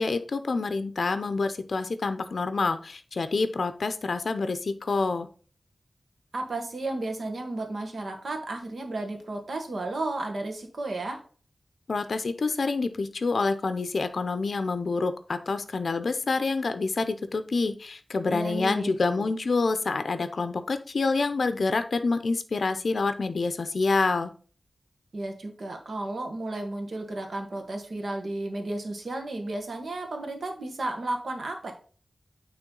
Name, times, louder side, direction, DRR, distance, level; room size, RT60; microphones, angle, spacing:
voice 1, 0.0-5.3 11.9-24.3, left 3 dB, 75° left, 10 dB, 0.5 m, -27 dB
voice 2, 6.3-11.2 18.3-19.3 25.1-31.7, right 2 dB, 80° right, 4 dB, 1.3 m, -33 dB
9.0 x 3.2 x 3.8 m, 0.41 s
wide cardioid pair, 100°, 0 cm